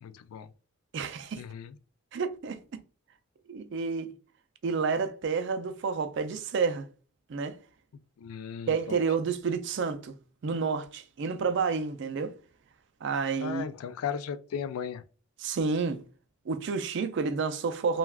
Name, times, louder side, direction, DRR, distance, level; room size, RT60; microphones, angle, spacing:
voice 1, 0.0-0.5 1.4-1.7 8.2-9.0 13.4-15.0, left 7 dB, 90° left, 0.3 m, -36 dB
voice 2, 0.9-1.4 2.1-2.6 3.5-4.1 4.6-6.8 7.3-7.6 8.7-10.1 10.4-12.3 13.0-13.7 15.4-16.0 16.5-18.0, right 5 dB, 55° right, 0.3 m, -29 dB
2.3 x 2.3 x 3.3 m
head